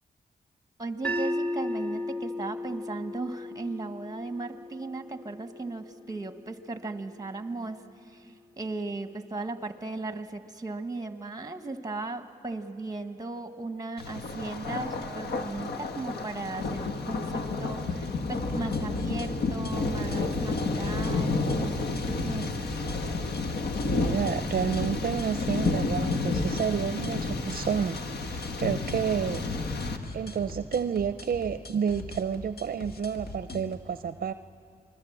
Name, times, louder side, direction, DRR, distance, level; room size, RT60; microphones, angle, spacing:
voice 1, 0.8-22.8, right 3 dB, 20° right, 8 dB, 1.6 m, -37 dB
sound 1, 1.0-7.2, left 1 dB, 5° left, 1.9 m, -36 dB
Thunder, 14.0-30.0, left 3 dB, 90° left, 1.3 m, -31 dB
sound 2, 18.3-33.8, left 2 dB, 70° left, 1.8 m, -42 dB
voice 2, 23.8-29.4 30.1-34.3, right 7 dB, 60° right, 11 dB, 0.6 m, -30 dB
28.0 x 20.5 x 7.5 m, 2.3 s
cardioid pair, 60°, 17 cm